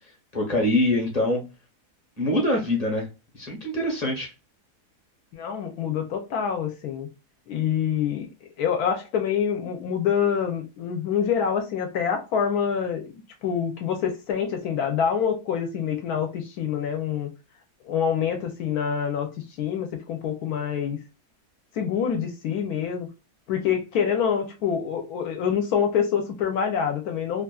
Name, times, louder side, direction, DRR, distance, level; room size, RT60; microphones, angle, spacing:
voice 1, 0.3-1.4 2.2-3.1 3.3-4.3, left 1 dB, 30° left, 0.9 m, -24 dB
voice 2, 5.3-7.1 7.5-8.3 8.6-13.1 13.4-17.3 17.8-19.3 19.6-21.0 21.8-23.1 23.5-27.4, left 7 dB, 75° left, 1.0 m, -26 dB
2.8 x 2.4 x 2.2 m
omnidirectional pair, 1.7 m